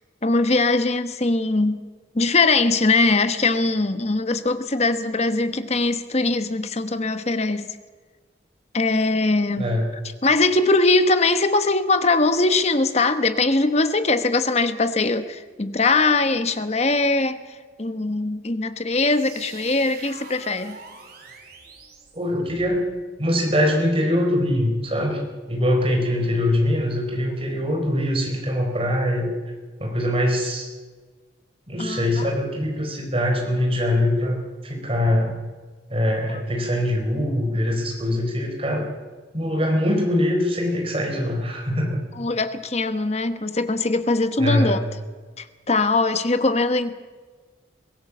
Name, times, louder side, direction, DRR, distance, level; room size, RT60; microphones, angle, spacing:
voice 1, 0.2-1.9 2.1-7.8 8.7-9.6 10.2-17.4 17.8-20.8 31.8-32.0 36.3-36.4 42.2-44.8 45.4-46.9, left 3 dB, 35° left, 1.1 m, -21 dB
voice 2, 9.6-9.9 22.1-22.8 23.2-25.2 25.5-29.3 29.8-30.7 31.7-34.4 34.6-35.4 35.9-38.8 39.3-42.0 44.4-44.8, left 1 dB, 30° right, 4.6 m, -23 dB
sound 1, 19.0-22.8, right 4 dB, 55° right, 4.8 m, -44 dB
23.5 x 17.0 x 7.4 m
head